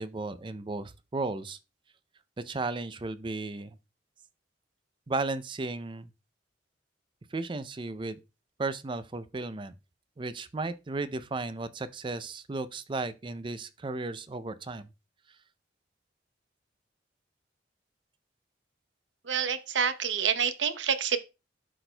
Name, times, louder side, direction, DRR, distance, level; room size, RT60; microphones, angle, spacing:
voice 1, 0.0-1.6 2.4-3.8 5.1-6.1 7.3-8.2 8.6-9.7 10.2-14.9, right 3 dB, 25° right, 0.4 m, -34 dB
voice 2, 19.3-21.2, right 7 dB, 85° right, 0.7 m, -27 dB
12.0 x 4.3 x 2.2 m
head